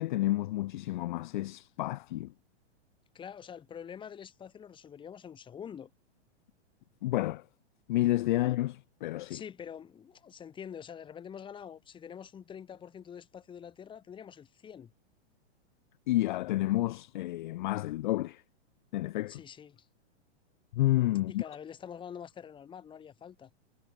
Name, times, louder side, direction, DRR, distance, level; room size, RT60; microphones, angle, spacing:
voice 1, 0.0-2.3 7.0-7.4 7.9-9.4 16.1-18.4 18.9-19.4 20.7-21.4, left 16 dB, 45° left, 0.5 m, -30 dB
voice 2, 3.1-5.9 9.2-14.9 19.3-19.9 21.3-23.5, left 8 dB, 15° left, 3.4 m, -46 dB
hypercardioid pair, 155°, 33 cm